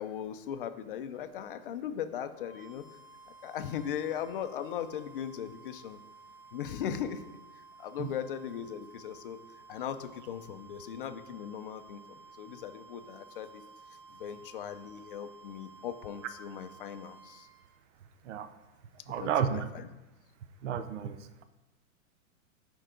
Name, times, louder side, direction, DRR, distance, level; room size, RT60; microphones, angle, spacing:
voice 1, 0.0-2.8 3.4-6.0 6.5-7.2 7.8-9.4 9.7-13.6 14.1-17.5 19.2-19.9, left 9 dB, 40° left, 10 dB, 0.5 m, -38 dB
sound 1, 2.3-17.6, right 3 dB, 40° right, 3.0 m, -54 dB
voice 2, 19.1-19.6 20.6-21.2, right 8 dB, 60° right, 10 dB, 0.6 m, -31 dB
11.0 x 4.6 x 3.8 m, 1.1 s
supercardioid pair, 165°, 41 cm